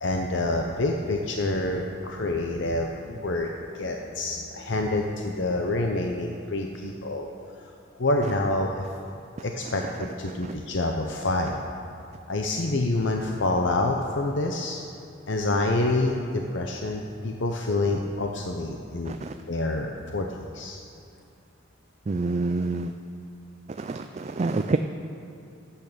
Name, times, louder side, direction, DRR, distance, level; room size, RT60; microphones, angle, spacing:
voice 1, 0.0-3.5 3.7-7.3 8.0-8.8 9.4-11.6 12.3-14.8 15.3-20.8, left 2 dB, 60° left, 2 dB, 0.8 m, -27 dB
voice 2, 22.1-22.9 23.8-24.8, right 3 dB, 35° right, 7 dB, 0.4 m, -27 dB
14.0 x 8.4 x 6.8 m, 2.5 s
head